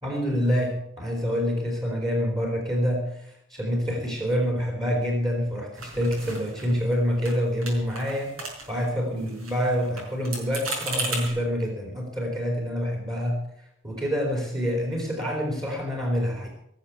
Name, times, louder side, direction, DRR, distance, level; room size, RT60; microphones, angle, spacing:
voice 1, 0.0-8.3 8.7-13.4 13.8-16.5, equal, 20° right, 1 dB, 3.2 m, -27 dB
sound 1, 5.8-6.9 7.2-7.4 7.6-8.9 9.2-11.3, right 2 dB, 85° right, 5.6 m, -35 dB
19.0 x 7.4 x 7.9 m, 0.76 s
head